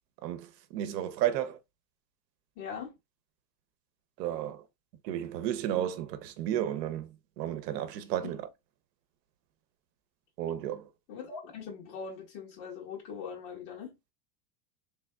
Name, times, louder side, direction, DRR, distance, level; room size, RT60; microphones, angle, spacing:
voice 1, 0.7-1.6 4.2-4.6 5.0-7.1 7.4-8.4 10.4-10.8, right 11 dB, 85° right, 0.8 m, -32 dB
voice 2, 2.6-2.9 8.2-8.4 11.1-14.0, left 6 dB, 45° left, 1.7 m, -41 dB
3.4 x 3.3 x 2.2 m
supercardioid pair, 160°, 49 cm